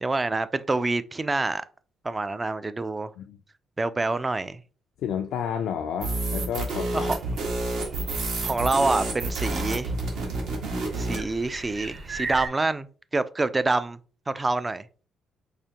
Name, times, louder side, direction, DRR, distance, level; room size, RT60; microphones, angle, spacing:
voice 1, 0.0-1.6 2.0-3.1 3.8-4.6 6.9-7.2 8.4-9.9 11.0-12.9 13.1-14.0 14.3-14.9, right 3 dB, 20° right, 0.3 m, -26 dB
voice 2, 5.0-7.1, left 8 dB, 80° left, 0.3 m, -31 dB
sound 1, 6.0-11.2, right 2 dB, 80° right, 1.4 m, -29 dB
sound 2, 7.1-12.5, right 3 dB, 40° right, 0.8 m, -39 dB
4.8 x 2.5 x 2.8 m
cardioid pair, 90°, 0 cm